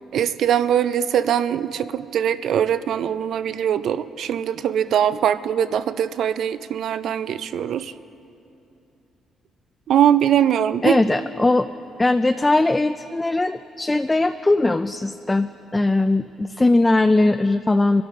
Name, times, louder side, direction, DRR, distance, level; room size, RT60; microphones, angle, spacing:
voice 1, 0.1-7.9 9.9-11.0, right 9 dB, 70° right, 13 dB, 0.4 m, -21 dB
voice 2, 10.8-11.7 12.0-18.0, left 2 dB, 15° left, 10 dB, 0.3 m, -20 dB
22.0 x 11.5 x 3.7 m, 2.8 s
cardioid pair, 90°, 0 cm